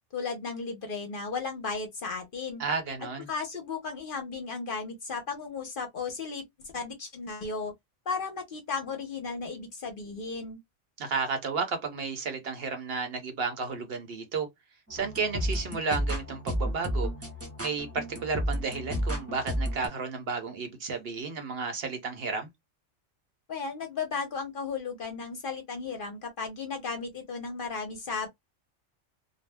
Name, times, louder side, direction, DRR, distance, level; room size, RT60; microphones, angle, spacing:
voice 1, 0.1-2.6 3.3-7.7 8.1-10.6 23.5-28.3, left 4 dB, 55° left, 0.8 m, -35 dB
voice 2, 2.6-3.3 11.0-14.5 14.9-17.1 17.6-22.5, right 4 dB, 60° right, 0.9 m, -32 dB
sound 1, 14.9-19.9, equal, 15° right, 0.5 m, -32 dB
2.5 x 2.0 x 3.3 m
omnidirectional pair, 1.3 m